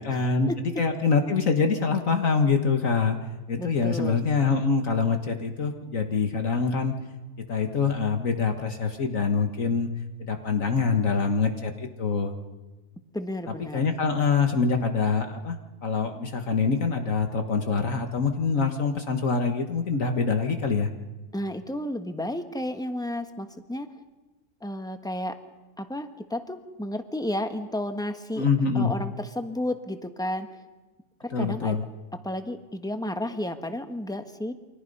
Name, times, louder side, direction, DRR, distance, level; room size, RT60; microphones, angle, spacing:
voice 1, 0.0-3.2 3.5-6.9 7.5-9.9 10.2-12.3 13.7-15.6 15.8-20.9 28.4-28.9 31.3-31.8, left 5 dB, 60° left, 5 dB, 1.9 m, -25 dB
voice 2, 3.6-4.2 13.1-13.9 21.3-23.9 24.6-25.4 25.8-28.5 28.7-30.5 31.2-31.8 32.1-34.5, left 1 dB, 5° left, 7 dB, 1.2 m, -32 dB
29.5 x 25.0 x 5.5 m, 1.2 s
omnidirectional pair, 1.6 m